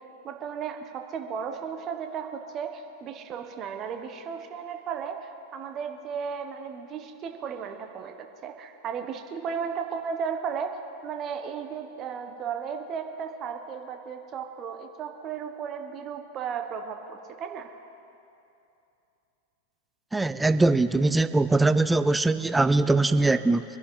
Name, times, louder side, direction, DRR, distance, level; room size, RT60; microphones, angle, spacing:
voice 1, 0.0-17.7, right 6 dB, 30° right, 5 dB, 1.3 m, -35 dB
voice 2, 20.1-23.6, right 2 dB, 10° right, 12 dB, 0.5 m, -22 dB
25.0 x 10.5 x 3.9 m, 2.8 s
figure-of-eight pair, 90°, 0 cm